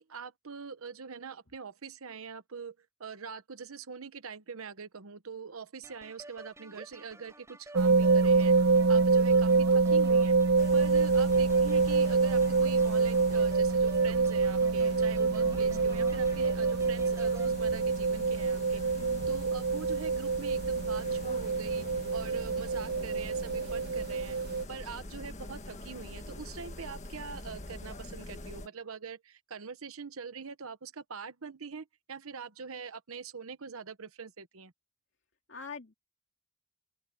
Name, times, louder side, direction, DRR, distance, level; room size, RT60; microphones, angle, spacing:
voice 1, 0.0-8.5 8.9-10.4 10.7-21.9 22.1-24.4 24.7-34.7, right 5 dB, 90° right, 1.0 m, -43 dB
sound 1, 5.8-17.5, right 1 dB, 15° right, 4.2 m, -51 dB
sound 2, 7.8-24.6, right 4 dB, 50° right, 0.6 m, -26 dB
sound 3, 10.5-28.7, left 1 dB, 35° left, 1.7 m, -45 dB
voice 2, 18.9-19.5 35.5-35.9, left 4 dB, 55° left, 2.6 m, -46 dB
open air
head